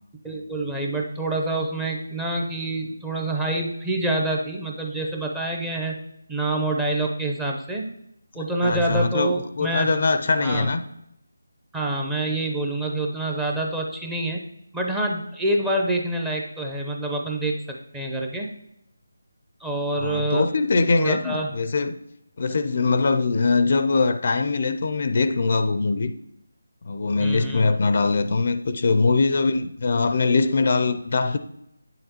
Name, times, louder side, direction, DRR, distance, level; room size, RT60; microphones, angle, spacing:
voice 1, 0.2-6.0 6.3-7.9 8.3-9.9 10.4-10.7 11.7-14.4 14.7-18.5 19.6-20.5 21.0-21.5 27.2-27.7, right 2 dB, 5° right, 0.7 m, -26 dB
voice 2, 8.6-10.8 20.0-21.9 22.4-26.1 26.8-31.4, left 4 dB, 50° left, 0.5 m, -22 dB
8.6 x 6.7 x 2.9 m
figure-of-eight pair, 160°, 0 cm